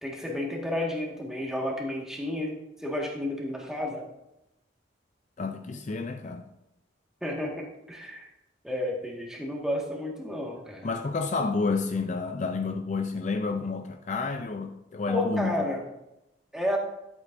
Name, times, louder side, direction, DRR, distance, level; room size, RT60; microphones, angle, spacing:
voice 1, 0.0-4.1 7.2-8.3 8.6-10.9 15.1-15.8 16.5-16.8, left 1 dB, 5° right, 1.6 m, -31 dB
voice 2, 5.4-6.4 10.8-15.7, left 4 dB, 40° left, 0.4 m, -30 dB
11.5 x 8.2 x 2.6 m
head